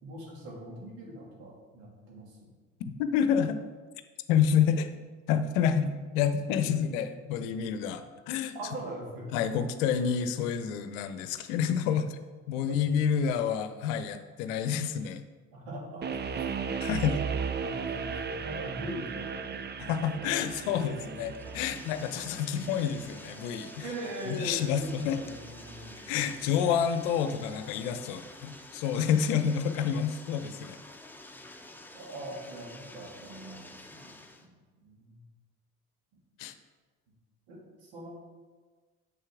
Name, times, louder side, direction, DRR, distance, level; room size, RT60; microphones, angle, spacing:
voice 1, 0.0-2.5 6.7-6.8 8.5-9.3 12.5-12.8 15.5-16.6 17.5-21.0 21.7-22.2 23.8-26.5 31.4-31.6 31.9-33.6 33.9-35.2 37.1-37.2 37.5-38.1, right 1 dB, 70° right, -3 dB, 2.7 m, -42 dB
voice 2, 2.8-3.6 4.3-4.9 5.3-8.5 9.3-12.2 12.5-15.2 16.8-17.2 19.9-23.7 24.3-25.2 26.1-30.8 36.4-36.5, left 8 dB, 70° left, 10 dB, 0.8 m, -28 dB
sound 1, 16.0-27.1, right 6 dB, 25° right, 0.6 m, -38 dB
Bathtub (filling or washing), 20.4-34.5, left 2 dB, 5° left, 1.1 m, -49 dB
9.5 x 7.4 x 3.6 m, 1.4 s
figure-of-eight pair, 50°, 41 cm